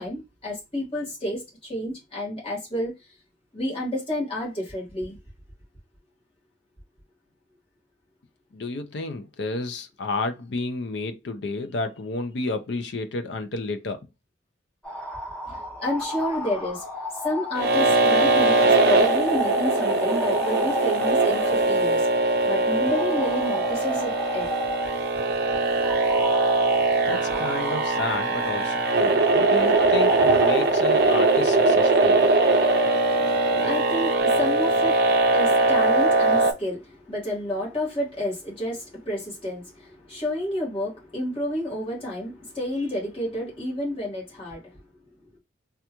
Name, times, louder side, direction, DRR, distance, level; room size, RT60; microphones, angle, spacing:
voice 1, 0.0-3.1 3.5-5.2 15.5-16.8 17.2-24.5 33.0-45.4, left 1 dB, 30° left, 1.6 m, -30 dB
voice 2, 8.5-14.0 27.1-32.2, left 3 dB, 65° left, 0.5 m, -31 dB
sound 1, 14.8-34.2, left 1 dB, 5° left, 0.8 m, -35 dB
sound 2, 17.5-36.5, right 3 dB, 55° right, 0.4 m, -21 dB
3.3 x 2.4 x 2.9 m
head